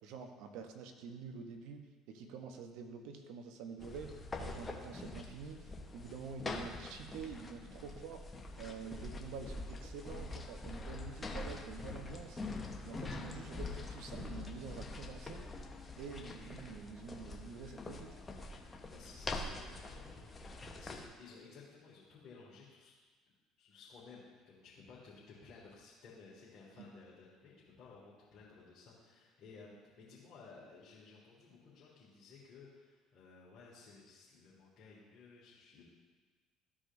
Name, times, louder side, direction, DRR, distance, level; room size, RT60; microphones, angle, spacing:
voice 1, 0.0-8.2 8.6-12.4 12.8-15.4 16.0-18.1 26.7-26.9, right 5 dB, 70° right, 5 dB, 0.9 m, -48 dB
sound 1, 3.8-21.1, left 2 dB, 25° left, 1.0 m, -45 dB
voice 2, 18.9-22.9 23.6-35.8, left 4 dB, 55° left, -7 dB, 1.9 m, -57 dB
13.5 x 4.9 x 2.6 m, 1.4 s
hypercardioid pair, 65°, 0 cm